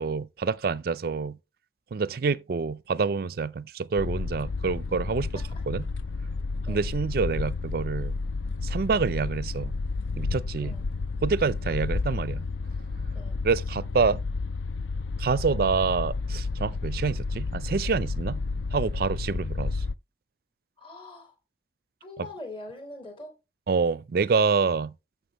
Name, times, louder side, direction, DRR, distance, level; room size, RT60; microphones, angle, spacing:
voice 1, 0.0-1.4 1.9-5.9 6.7-8.1 8.6-9.8 10.2-10.7 11.2-12.5 13.4-14.2 15.2-18.4 18.7-19.8 22.2-22.3 23.7-24.9, right 5 dB, 55° right, 0.4 m, -27 dB
sound 1, 4.0-19.9, left 3 dB, 85° left, 0.4 m, -31 dB
voice 2, 20.8-21.3 22.0-23.3, left 2 dB, 30° left, 3.2 m, -43 dB
11.5 x 7.3 x 3.0 m
head